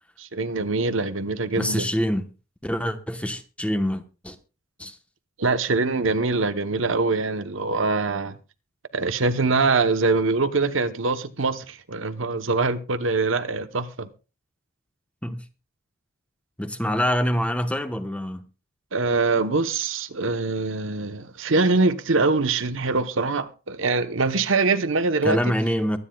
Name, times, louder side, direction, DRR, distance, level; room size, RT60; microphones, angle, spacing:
voice 1, 0.2-1.9 5.4-8.4 8.9-14.1 18.9-25.4, right 3 dB, 70° right, 1.0 m, -23 dB
voice 2, 1.6-2.3 2.6-4.4 4.8-5.0 15.2-15.4 16.6-18.4 25.2-26.0, equal, 5° left, 1.1 m, -25 dB
23.5 x 9.7 x 2.3 m
head